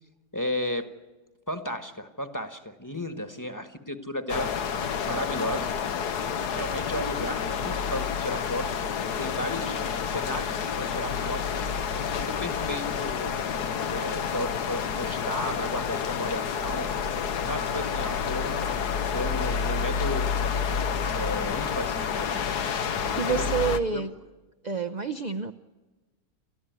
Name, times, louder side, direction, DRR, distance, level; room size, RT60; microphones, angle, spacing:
voice 1, 0.3-0.9 1.5-4.5 5.0-5.7 6.5-8.7 9.2-9.8 10.1-11.4 12.1-13.4 13.9-17.1 17.4-18.8 19.1-20.3 21.1-22.6 23.0-23.5 23.9-24.0, left 1 dB, 10° left, 9 dB, 1.4 m, -34 dB
sound 1, 4.3-23.8, left 7 dB, 80° left, 1.7 m, -29 dB
voice 2, 23.2-24.1 24.6-25.5, right 5 dB, 35° right, 7 dB, 0.8 m, -28 dB
29.0 x 14.0 x 9.4 m, 1.2 s
omnidirectional pair, 1.7 m